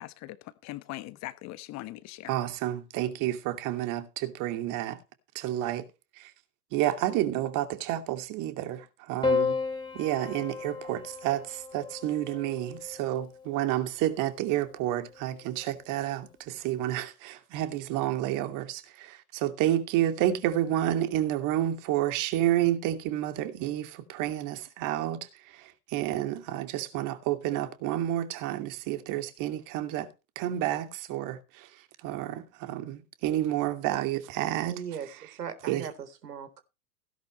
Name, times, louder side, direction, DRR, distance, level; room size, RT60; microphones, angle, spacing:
voice 1, 0.0-2.3, left 17 dB, 30° left, 1.3 m, -41 dB
voice 2, 2.3-5.0 5.3-5.9 6.2-6.3 6.7-9.6 9.9-30.1 30.4-31.7 32.0-35.3 35.7-35.9, right 13 dB, 40° right, 2.6 m, -30 dB
Piano, 9.2-13.7 14.9-15.6, left 5 dB, 10° left, 3.8 m, -33 dB
voice 3, 34.6-35.1 35.4-36.6, right 8 dB, 70° right, 3.8 m, -38 dB
17.0 x 11.0 x 3.2 m
hypercardioid pair, 105°, 50 cm